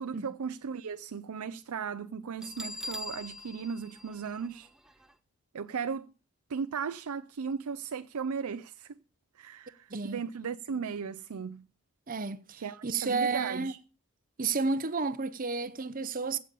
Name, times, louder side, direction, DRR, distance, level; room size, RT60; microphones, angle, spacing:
voice 1, 0.0-4.7 5.5-6.1 6.5-8.9 9.4-11.7 12.5-13.8, right 6 dB, 85° right, 0.5 m, -36 dB
Bell, 2.4-5.1, left 1 dB, 5° right, 0.6 m, -42 dB
voice 2, 9.9-10.2 12.1-13.7 14.4-16.4, right 4 dB, 40° right, 0.8 m, -31 dB
16.0 x 6.9 x 5.3 m
head